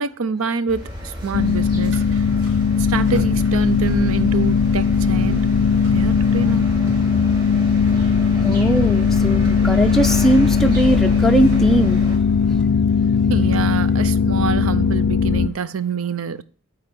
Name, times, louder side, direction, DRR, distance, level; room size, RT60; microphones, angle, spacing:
voice 1, 0.0-2.3 2.8-5.4 5.9-6.7 13.3-16.4, right 5 dB, 85° right, 0.6 m, -26 dB
sound 1, 0.7-12.2, equal, 20° right, 3.8 m, -32 dB
sound 2, 1.3-15.5, left 6 dB, 75° left, 0.4 m, -18 dB
sound 3, 1.3-12.6, equal, 65° right, 3.5 m, -39 dB
voice 2, 8.3-12.0, right 1 dB, ahead, 0.4 m, -19 dB
8.8 x 3.9 x 6.8 m
head